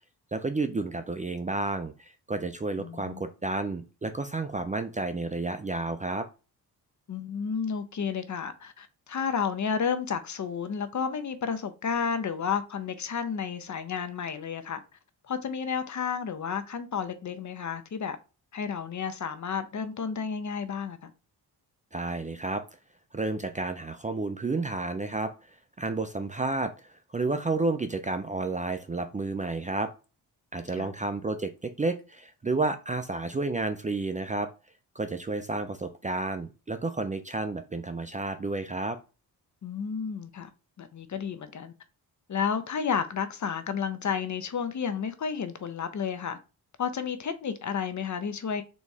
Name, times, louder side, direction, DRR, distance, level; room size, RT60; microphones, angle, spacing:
voice 1, 0.3-6.3 21.9-22.6 23.1-25.3 25.8-29.9 30.5-34.5 35.0-39.0, right 3 dB, 20° right, 0.4 m, -31 dB
voice 2, 2.8-3.2 7.1-14.8 15.3-18.2 18.5-21.1 30.8-30.9 39.6-40.5 40.8-41.7 42.3-46.4 46.8-48.6, left 6 dB, 45° left, 0.7 m, -31 dB
4.1 x 3.0 x 3.5 m
cardioid pair, 75°, 41 cm